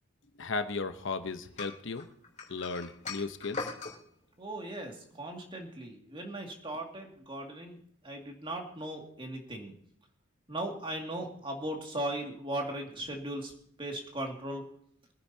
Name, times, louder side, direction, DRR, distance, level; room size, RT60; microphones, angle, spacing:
voice 1, 0.4-2.1 2.5-3.7, left 4 dB, 60° left, 9 dB, 0.9 m, -35 dB
sound 1, 1.6-4.0, left 4 dB, 35° left, 3.6 m, -40 dB
voice 2, 4.4-7.8 8.0-9.7 10.5-13.5 13.8-14.6, right 1 dB, 25° right, 1 dB, 2.3 m, -38 dB
24.5 x 10.0 x 2.8 m, 0.65 s
head